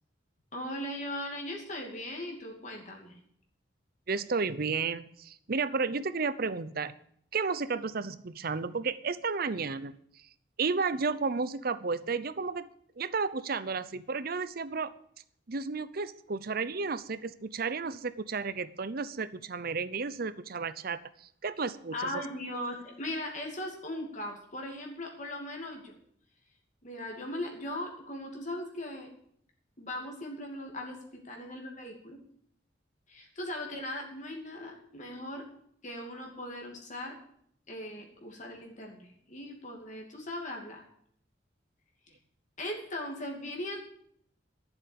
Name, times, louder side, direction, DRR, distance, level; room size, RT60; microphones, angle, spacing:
voice 1, 0.5-3.1 21.9-26.0 26.8-29.1 29.8-32.2 33.1-35.5 35.8-37.2 37.7-40.8 42.1-42.2 42.6-43.8, left 1 dB, 45° left, 1 dB, 2.6 m, -39 dB
voice 2, 4.1-6.9 7.3-9.9 10.6-12.7 13.0-14.9 15.5-22.2, right 4 dB, 55° right, 15 dB, 0.7 m, -32 dB
13.0 x 7.2 x 8.6 m, 0.66 s
head